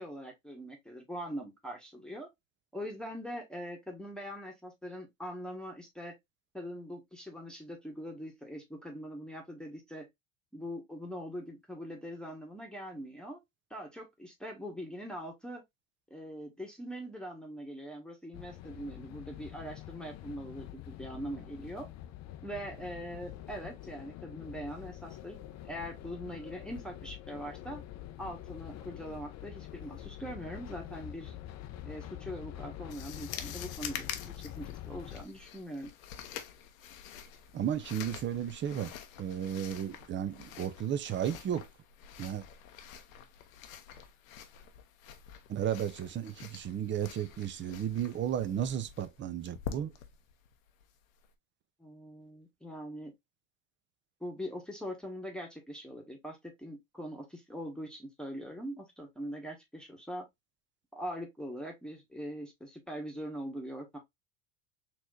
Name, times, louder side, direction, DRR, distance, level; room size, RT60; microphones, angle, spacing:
voice 1, 0.0-2.3 2.7-6.1 6.5-10.1 10.5-13.4 13.7-15.6 16.1-21.9 22.4-25.4 25.6-27.8 28.2-31.3 31.8-35.9 51.8-53.1 54.2-60.3 60.9-64.0, equal, ahead, 1.3 m, -42 dB
sound 1, 18.3-35.2, left 13 dB, 40° left, 0.6 m, -46 dB
sound 2, 32.9-51.3, left 9 dB, 80° left, 0.9 m, -47 dB
voice 2, 37.5-38.9 39.2-41.7 42.2-42.4 45.5-49.9, right 9 dB, 30° right, 0.6 m, -34 dB
4.4 x 3.1 x 2.5 m
hypercardioid pair, 90°, 40 cm